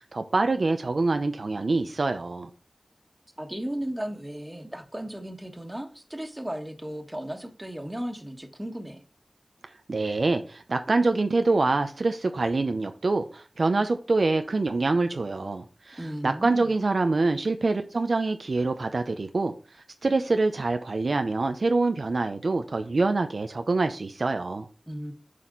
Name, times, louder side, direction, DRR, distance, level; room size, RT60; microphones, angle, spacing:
voice 1, 0.1-2.5 9.9-19.5 20.0-24.7, right 3 dB, 75° right, 0.6 m, -25 dB
voice 2, 3.4-9.0 16.0-16.7 24.9-25.1, equal, 15° right, 1.5 m, -35 dB
7.5 x 4.2 x 3.9 m
wide cardioid pair, 45°, 0 cm